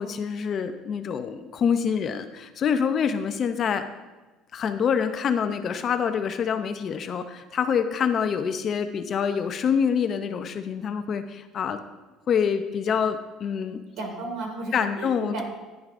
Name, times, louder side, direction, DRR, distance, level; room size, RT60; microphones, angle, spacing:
voice 1, 0.0-3.9 4.5-11.8 12.3-13.8 14.7-15.4, left 7 dB, 30° left, 8 dB, 0.4 m, -26 dB
voice 2, 14.0-15.4, right 3 dB, 60° right, 2 dB, 1.8 m, -33 dB
10.5 x 9.3 x 2.5 m, 1.2 s
cardioid pair, 170°, 0 cm